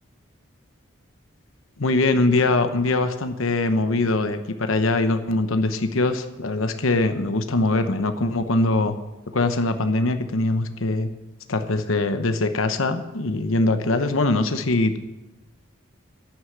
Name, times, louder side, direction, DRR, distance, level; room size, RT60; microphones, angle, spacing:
voice 1, 1.8-9.0 9.3-11.1 11.5-15.0, left 2 dB, 85° left, 9 dB, 0.9 m, -22 dB
11.0 x 9.8 x 7.9 m, 1.0 s
head